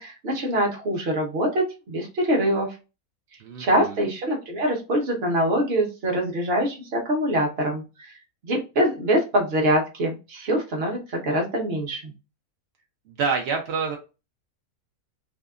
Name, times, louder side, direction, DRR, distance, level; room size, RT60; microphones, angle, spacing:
voice 1, 0.0-2.8 3.6-8.1 8.4-12.1, right 1 dB, 50° right, 1 dB, 0.9 m, -24 dB
voice 2, 3.4-4.0 13.1-14.0, right 5 dB, 65° right, 2 dB, 0.6 m, -27 dB
2.7 x 2.3 x 2.3 m, 0.29 s
omnidirectional pair, 1.5 m